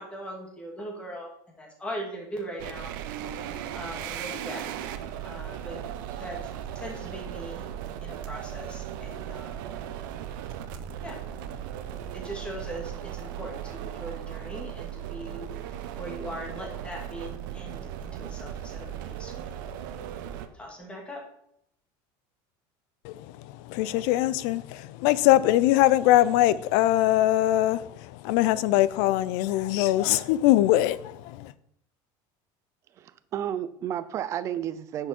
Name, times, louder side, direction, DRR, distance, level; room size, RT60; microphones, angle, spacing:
voice 1, 0.0-2.9 3.7-4.6 5.2-5.8 6.2-6.4 6.7-7.6 8.0-9.7 11.0-11.2 12.1-15.4 15.7-19.5 20.5-21.2, equal, 10° left, 2.0 m, -40 dB
sound 1, 2.6-20.5, right 10 dB, 75° right, 0.9 m, -37 dB
voice 2, 23.0-31.5, left 15 dB, 60° left, 0.5 m, -22 dB
voice 3, 33.0-35.1, right 10 dB, 25° right, 0.5 m, -32 dB
10.0 x 6.7 x 4.4 m
cardioid pair, 175°, 11 cm